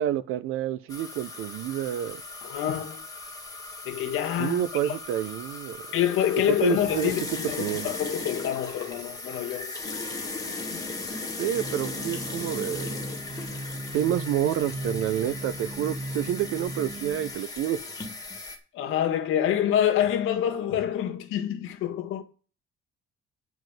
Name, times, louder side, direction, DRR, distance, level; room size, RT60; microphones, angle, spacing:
voice 1, 0.0-2.2 4.4-5.9 6.6-7.1 7.6-7.9 11.4-13.0 13.9-17.8, right 11 dB, 85° right, 1.0 m, -28 dB
sound 1, 0.9-18.6, left 3 dB, 15° left, 2.1 m, -37 dB
voice 2, 2.4-3.0 3.8-5.0 5.9-9.7 10.7-10.8 18.7-22.2, left 10 dB, 75° left, 1.7 m, -27 dB
sound 2, 11.5-17.3, right 2 dB, 30° right, 1.7 m, -37 dB
9.7 x 4.8 x 7.9 m
cardioid pair, 145°, 21 cm